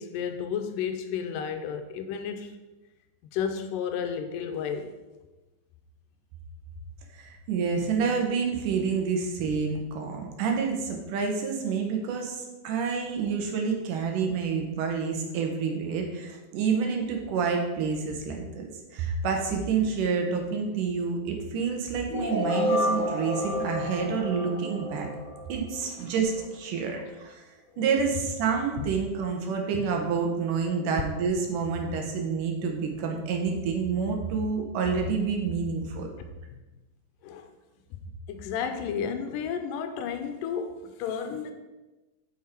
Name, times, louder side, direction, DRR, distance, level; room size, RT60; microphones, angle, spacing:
voice 1, 0.0-2.5 3.3-4.9 28.8-28.9 29.7-29.9 37.2-37.5 38.3-41.5, left 7 dB, 80° left, 7 dB, 2.1 m, -32 dB
voice 2, 7.1-25.1 25.5-27.4 27.8-36.1, right 5 dB, 75° right, 2 dB, 2.5 m, -28 dB
sound 1, 22.1-26.0, equal, 30° left, 1.5 m, -30 dB
7.3 x 5.8 x 4.4 m, 1.1 s
omnidirectional pair, 4.0 m